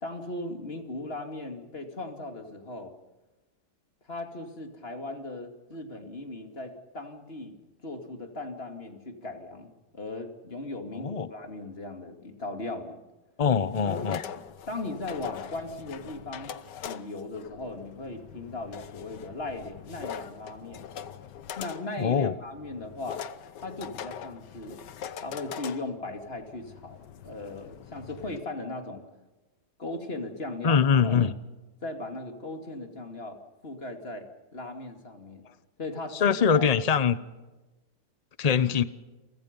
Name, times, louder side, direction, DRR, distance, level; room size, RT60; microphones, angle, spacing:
voice 1, 0.0-2.9 4.1-7.6 7.8-9.7 9.9-13.0 13.8-14.2 14.7-16.5 16.8-20.9 21.6-23.2 23.6-24.8 25.2-29.0 29.8-31.2 31.8-33.4 33.6-34.3 34.5-35.5 35.8-36.7, left 2 dB, 30° left, 4 dB, 2.9 m, -38 dB
voice 2, 10.9-11.3 13.4-14.2 22.0-22.3 30.6-31.3 36.1-37.2 38.4-38.8, left 6 dB, 85° left, 13 dB, 0.3 m, -23 dB
sound 1, 13.4-28.4, left 9 dB, 65° left, 1.5 m, -42 dB
29.5 x 24.5 x 5.4 m, 1.1 s
omnidirectional pair, 2.1 m